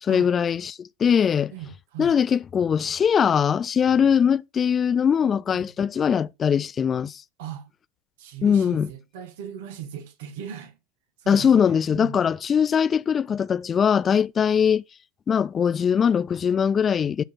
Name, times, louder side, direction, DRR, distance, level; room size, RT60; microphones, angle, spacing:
voice 1, 0.0-1.5 2.0-7.2 8.4-8.9 11.3-14.8 15.3-17.2, left 7 dB, 30° left, 0.4 m, -21 dB
voice 2, 1.5-2.2 5.2-5.7 7.4-7.7 8.2-10.8 11.2-12.2, right 9 dB, 65° right, 1.8 m, -39 dB
12.0 x 4.2 x 5.7 m
figure-of-eight pair, 75°, 0 cm